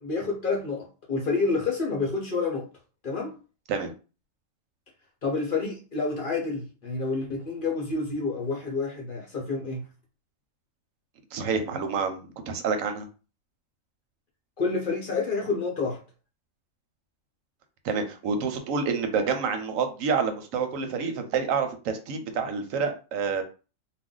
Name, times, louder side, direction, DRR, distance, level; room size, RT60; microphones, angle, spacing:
voice 1, 0.0-2.7 3.0-3.4 5.2-9.8 14.6-16.0, left 4 dB, 50° left, 0.7 m, -28 dB
voice 2, 11.3-13.1 17.8-23.4, right 5 dB, 85° right, 1.0 m, -28 dB
2.5 x 2.1 x 3.7 m
omnidirectional pair, 1.4 m